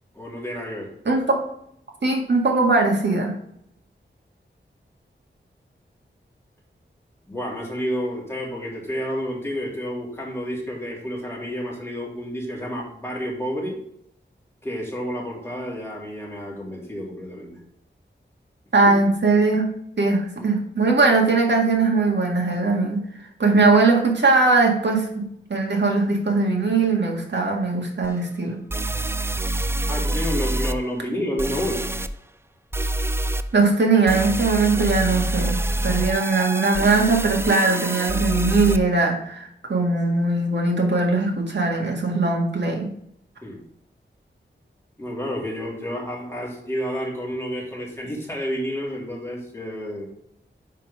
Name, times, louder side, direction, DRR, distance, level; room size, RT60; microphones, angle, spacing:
voice 1, 0.1-0.9 7.3-13.7 14.6-17.6 23.5-23.6 29.9-31.9 43.4-43.7 45.0-50.1, equal, 10° left, -4 dB, 2.8 m, -30 dB
voice 2, 1.1-1.4 2.0-3.4 18.7-19.7 20.0-23.0 23.4-28.6 33.5-42.9, right 3 dB, 65° right, 0 dB, 1.8 m, -20 dB
sound 1, 28.0-28.1 28.7-30.7 31.4-32.1 32.7-33.4 34.1-38.8, right 1 dB, 10° right, 0.3 m, -26 dB
5.6 x 5.1 x 5.4 m, 0.74 s
wide cardioid pair, 90°, 20 cm